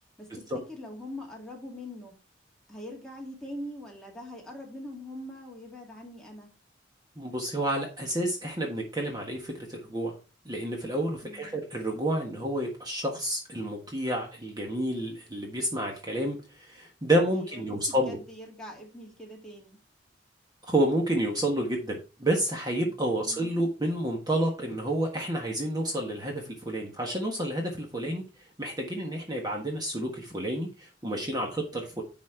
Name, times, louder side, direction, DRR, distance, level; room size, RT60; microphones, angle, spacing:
voice 1, 0.2-2.2 2.7-6.5 11.2-11.6 17.3-19.8 23.1-23.5, left 1 dB, 5° left, -2 dB, 2.2 m, -43 dB
voice 2, 7.2-10.1 10.4-18.2 20.7-28.2 28.6-32.0, right 1 dB, 20° right, 0 dB, 1.5 m, -29 dB
10.5 x 4.3 x 4.5 m, 0.33 s
head